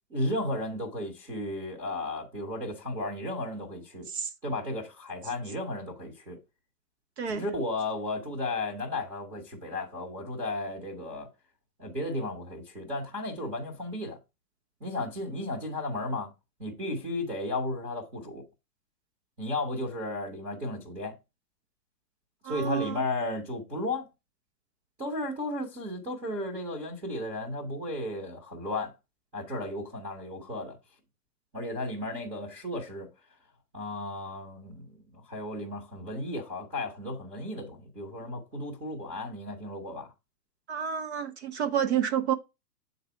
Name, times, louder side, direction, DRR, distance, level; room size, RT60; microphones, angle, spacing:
voice 1, 0.1-4.1 4.4-6.4 7.3-11.3 11.8-14.2 14.8-16.3 16.6-18.4 19.4-21.1 22.4-24.1 25.0-28.9 29.3-30.8 31.5-33.1 33.7-40.1, left 1 dB, 10° right, 0.8 m, -34 dB
voice 2, 22.4-23.0 40.7-42.3, right 8 dB, 45° right, 0.7 m, -29 dB
7.2 x 4.0 x 4.3 m
hypercardioid pair, 165°, 47 cm